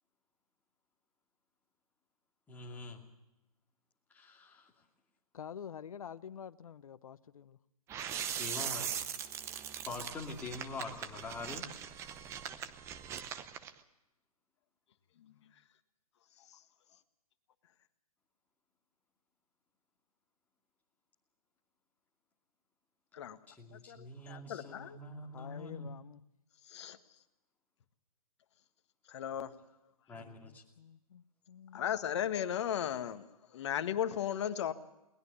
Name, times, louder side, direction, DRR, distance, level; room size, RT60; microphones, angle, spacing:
voice 1, 2.5-3.0 4.1-4.7 8.4-8.9 9.8-11.7 23.5-25.9 30.1-30.6, left 3 dB, 10° left, 2.7 m, -44 dB
voice 2, 5.3-7.6 25.3-26.2 30.1-32.0, left 8 dB, 65° left, 1.0 m, -48 dB
sound 1, 7.9-13.7, right 9 dB, 15° right, 0.8 m, -40 dB
voice 3, 23.7-25.0 26.7-27.0 29.1-29.5 31.7-34.7, left 9 dB, 50° left, 1.6 m, -36 dB
22.0 x 19.5 x 7.0 m
hypercardioid pair, 150°, 19 cm